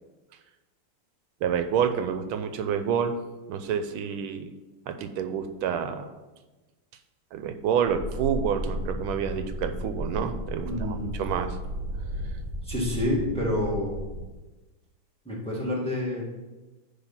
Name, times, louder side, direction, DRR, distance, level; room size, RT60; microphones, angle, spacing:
voice 1, 1.4-3.1 3.5-4.5 4.9-6.1 7.3-11.6, right 7 dB, 90° right, 8 dB, 1.5 m, -28 dB
sound 1, 7.9-14.3, equal, 35° right, 3.0 m, -34 dB
voice 2, 10.6-11.2 12.6-14.0 15.2-16.2, left 1 dB, 5° left, -4 dB, 1.4 m, -28 dB
10.0 x 3.5 x 5.7 m, 1.2 s
omnidirectional pair, 2.2 m